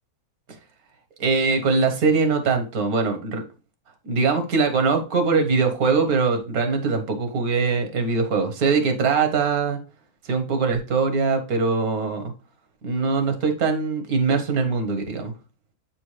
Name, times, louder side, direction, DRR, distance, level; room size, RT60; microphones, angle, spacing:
voice 1, 1.2-3.4 4.0-9.8 10.2-12.3 12.8-15.3, right 4 dB, 75° right, 7 dB, 1.5 m, -22 dB
7.8 x 4.3 x 3.1 m, 0.32 s
omnidirectional pair, 1.6 m